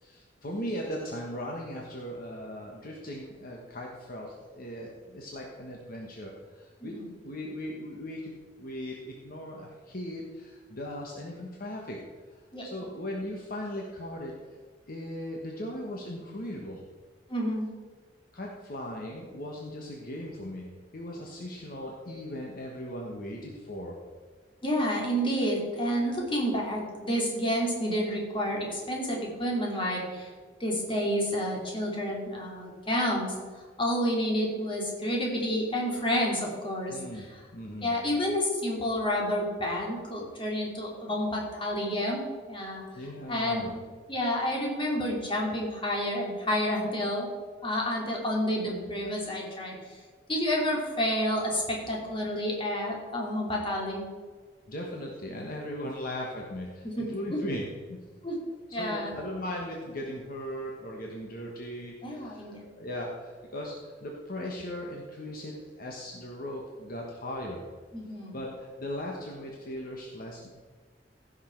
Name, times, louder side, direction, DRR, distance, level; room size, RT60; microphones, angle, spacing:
voice 1, 0.0-7.0 7.2-12.0 12.3-14.3 14.9-16.8 18.3-24.0 36.9-37.9 42.9-43.7 54.7-58.0 58.7-67.6 68.3-70.5, left 1 dB, 50° left, -1 dB, 1.4 m, -38 dB
voice 2, 17.3-17.7 24.6-30.3 30.6-33.3 33.8-37.3 37.8-42.8 43.3-43.7 44.1-47.3 47.6-49.8 50.3-54.0 56.8-57.4 58.2-58.4 58.7-59.2 62.0-62.6 67.9-68.3, equal, 30° left, -2 dB, 2.8 m, -29 dB
15.5 x 6.6 x 4.6 m, 1.5 s
head